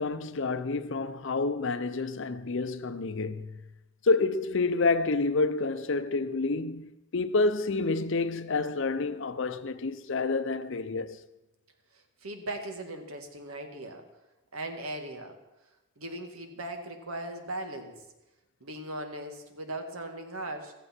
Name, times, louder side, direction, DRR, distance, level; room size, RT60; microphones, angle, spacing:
voice 1, 0.0-3.6 4.0-11.2, left 3 dB, 60° left, 0.7 m, -28 dB
voice 2, 11.9-14.0 14.5-15.4 16.0-18.0 18.6-20.7, right 1 dB, 85° right, 1.9 m, -38 dB
15.5 x 14.0 x 4.4 m
head